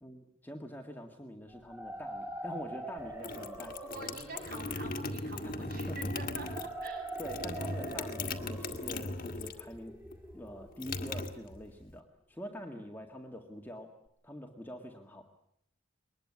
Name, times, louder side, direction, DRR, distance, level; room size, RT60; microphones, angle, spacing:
voice 1, 0.0-3.8 4.1-4.4 5.4-6.0 7.2-9.9 10.3-13.9 14.2-15.3, equal, 10° left, 3 dB, 1.9 m, -45 dB
sound 1, 1.5-11.4, right 2 dB, 10° right, 2.3 m, -44 dB
sound 2, 3.0-9.8 10.0-11.9, left 2 dB, 40° left, 1.8 m, -38 dB
voice 2, 3.8-7.1 12.6-12.8, right 2 dB, 45° right, 4 dB, 7.4 m, -46 dB
22.5 x 20.0 x 9.7 m, 0.72 s
head